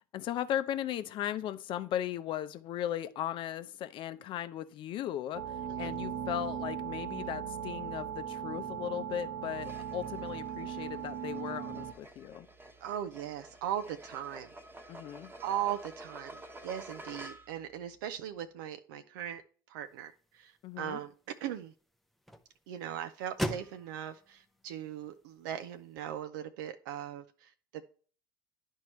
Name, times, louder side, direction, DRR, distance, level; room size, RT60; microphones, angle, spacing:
voice 1, 0.0-12.5 14.9-15.3 20.6-21.0, left 11 dB, 50° left, 0.6 m, -37 dB
sound 1, 5.3-11.9, right 8 dB, 50° right, 0.9 m, -38 dB
sound 2, 9.6-17.7, right 1 dB, 20° right, 1.1 m, -50 dB
voice 2, 12.8-14.5 14.8-14.9 15.4-19.4 19.7-21.1 21.4-21.7 22.7-28.0, right 10 dB, 70° right, 0.5 m, -39 dB
sound 3, 19.8-26.0, equal, ahead, 0.7 m, -43 dB
10.5 x 4.5 x 3.1 m
hypercardioid pair, 80°, 11 cm